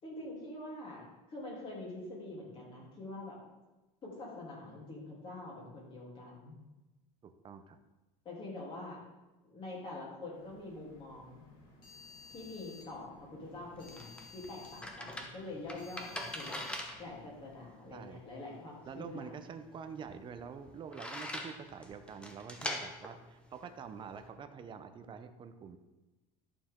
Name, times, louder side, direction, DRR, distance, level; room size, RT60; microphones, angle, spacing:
voice 1, 0.0-3.4 4.0-6.6 8.2-9.0 9.4-11.4 12.3-16.6 17.0-19.3, left 2 dB, 30° left, -4 dB, 3.3 m, -45 dB
voice 2, 7.2-7.8 17.9-18.2 18.8-25.8, right 6 dB, 30° right, 8 dB, 0.7 m, -46 dB
sound 1, 10.3-17.6, left 4 dB, 55° left, 2.9 m, -56 dB
sound 2, 13.4-24.3, left 1 dB, 5° left, 0.9 m, -44 dB
11.5 x 6.8 x 3.7 m, 1.1 s
cardioid pair, 140°, 17 cm